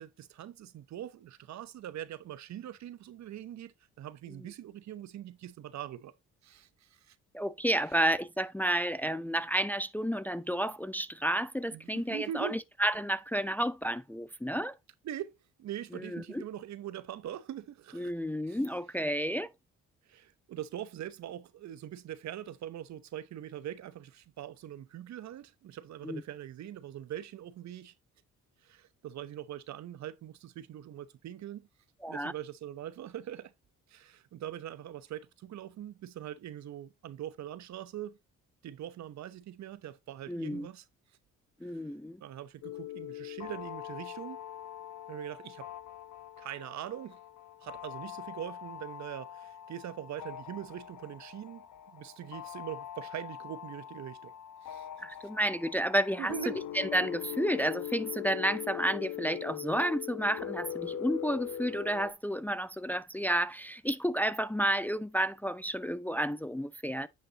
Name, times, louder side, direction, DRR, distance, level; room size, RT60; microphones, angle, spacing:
voice 1, 0.0-6.1 6.4-7.2 11.7-12.6 15.0-18.1 18.5-18.6 20.1-27.9 28.6-31.7 32.1-33.5 33.9-38.2 38.6-40.8 41.6-41.8 42.2-44.4 45.1-45.7 46.4-47.2 47.6-54.3 54.6-54.9 56.2-56.7, right 11 dB, 65° right, 0.9 m, -42 dB
voice 2, 7.3-14.8 15.9-16.4 17.9-19.5 26.0-26.2 32.0-32.3 40.3-40.7 41.6-42.2 55.0-56.3 56.7-67.1, right 1 dB, 5° left, 0.4 m, -31 dB
sound 1, 42.6-62.1, left 11 dB, 75° left, 1.1 m, -42 dB
10.0 x 5.3 x 2.9 m
cardioid pair, 90°, 30 cm